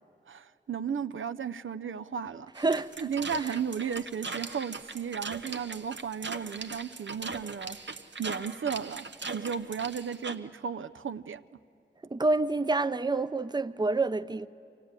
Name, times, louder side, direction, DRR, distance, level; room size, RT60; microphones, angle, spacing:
voice 1, 0.3-2.5 3.0-7.8 8.2-9.1 9.3-11.4, right 7 dB, 85° right, 0.5 m, -34 dB
voice 2, 2.6-3.1 3.4-3.6 12.0-14.5, right 3 dB, 20° right, 0.5 m, -28 dB
sound 1, 2.6-10.4, right 4 dB, 65° right, 0.8 m, -40 dB
24.0 x 16.0 x 9.6 m
wide cardioid pair, 40°, 20 cm